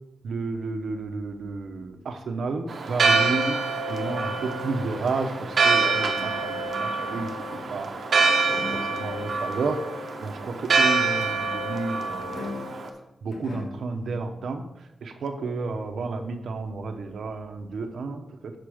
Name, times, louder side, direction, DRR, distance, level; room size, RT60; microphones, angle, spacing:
voice 1, 0.2-3.6 3.9-7.9 8.5-12.5 13.2-18.5, right 3 dB, 90° right, 5 dB, 0.9 m, -31 dB
Church bell, 2.7-12.9, right 4 dB, 55° right, 0.9 m, -25 dB
sound 1, 7.5-8.1 8.5-9.1 12.3-12.9 13.3-14.0, left 2 dB, 85° left, 1.5 m, -38 dB
6.6 x 5.0 x 6.3 m, 0.89 s
wide cardioid pair, 175°, 0 cm